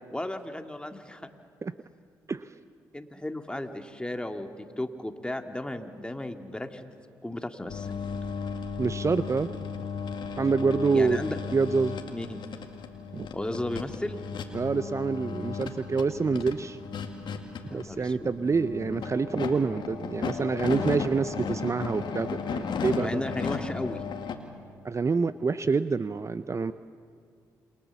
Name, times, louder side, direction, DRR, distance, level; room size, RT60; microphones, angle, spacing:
voice 1, 0.1-1.3 2.9-6.9 7.2-7.9 10.9-11.4 12.1-12.4 13.3-14.2 17.7-18.3 23.0-24.0, left 1 dB, 10° left, 6 dB, 2.2 m, -34 dB
sound 1, 7.7-24.3, left 5 dB, 65° left, 2.2 m, -35 dB
voice 2, 8.8-9.5 10.4-11.2 11.5-12.0 13.1-13.3 14.5-16.8 17.7-23.1 24.8-26.7, right 4 dB, 35° right, 14 dB, 0.6 m, -27 dB
28.0 x 22.0 x 7.1 m, 2.3 s
hypercardioid pair, 45°, 9 cm